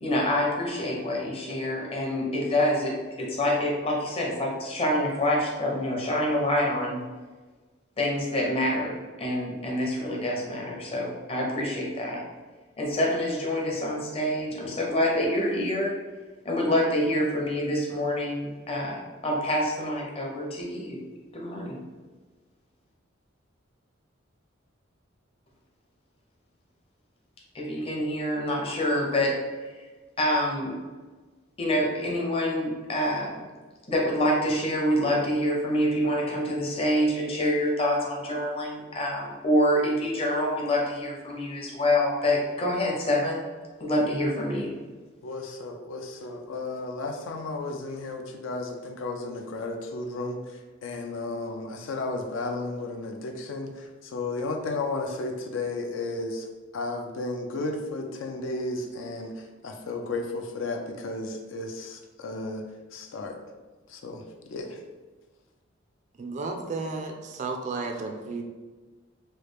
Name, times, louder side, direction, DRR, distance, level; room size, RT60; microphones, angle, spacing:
voice 1, 0.0-7.0 8.0-12.2 12.8-15.9 16.4-21.0 21.3-21.8 27.5-29.5 30.2-30.8 31.6-33.4 33.9-43.5 43.8-44.7, left 1 dB, 30° left, -2 dB, 0.7 m, -26 dB
voice 2, 45.2-56.5 56.7-62.6 62.9-63.4 63.9-64.8, left 2 dB, 75° left, 3 dB, 0.4 m, -33 dB
voice 3, 66.2-68.4, right 3 dB, 40° right, 3 dB, 0.3 m, -33 dB
3.1 x 2.3 x 3.3 m, 1.3 s
head